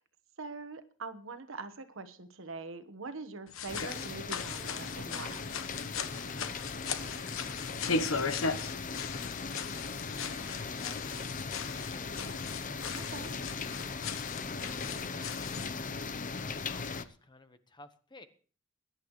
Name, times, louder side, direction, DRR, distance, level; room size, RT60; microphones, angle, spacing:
voice 1, 0.4-5.6 12.9-13.4, right 3 dB, 75° right, 10 dB, 1.3 m, -43 dB
sound 1, 3.5-15.7, left 4 dB, 90° left, 1.1 m, -38 dB
sound 2, 3.7-17.0, left 4 dB, 40° left, 0.8 m, -39 dB
voice 2, 6.3-6.9 13.7-14.2 14.5-15.3 16.4-18.3, left 2 dB, 25° left, 9 dB, 1.1 m, -57 dB
21.5 x 10.5 x 3.2 m, 0.41 s
head